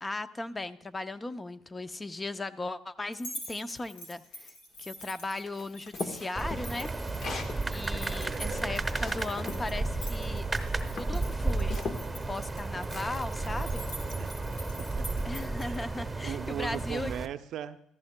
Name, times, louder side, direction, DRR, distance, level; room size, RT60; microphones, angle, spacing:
voice 1, 0.0-4.5 4.8-6.9 7.7-10.5 10.9-11.9 12.3-13.8 15.2-17.1, left 2 dB, 20° left, 12 dB, 0.6 m, -37 dB
sound 1, 3.1-15.8, equal, 90° left, 2.8 m, -46 dB
sound 2, 5.5-7.6 8.1-9.6 10.4-10.6 11.0-12.0, left 4 dB, 55° left, 1.3 m, -39 dB
sound 3, 6.3-17.3, right 2 dB, 15° right, 1.0 m, -33 dB
voice 2, 7.9-8.7 14.1-14.3 14.8-15.2 15.6-15.8 16.2-17.8, right 10 dB, 65° right, 10 dB, 0.5 m, -39 dB
14.5 x 14.5 x 2.2 m, 0.73 s
supercardioid pair, 80°, 0 cm